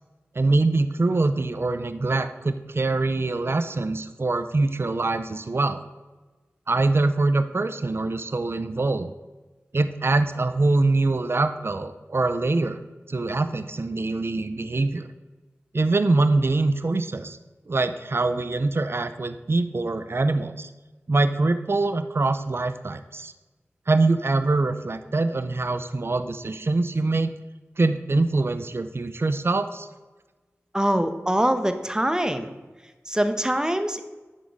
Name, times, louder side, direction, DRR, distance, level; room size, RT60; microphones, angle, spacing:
voice 1, 0.3-5.8 6.7-9.1 9.7-12.8 13.1-15.0 15.7-17.4 17.7-20.7 21.1-23.3 23.9-27.3 27.8-29.9, right 3 dB, 50° right, 10 dB, 0.5 m, -24 dB
voice 2, 30.7-32.5 32.8-34.0, right 1 dB, 15° right, 8 dB, 0.7 m, -24 dB
10.0 x 3.7 x 5.3 m, 1.2 s
cardioid pair, 40°, 5 cm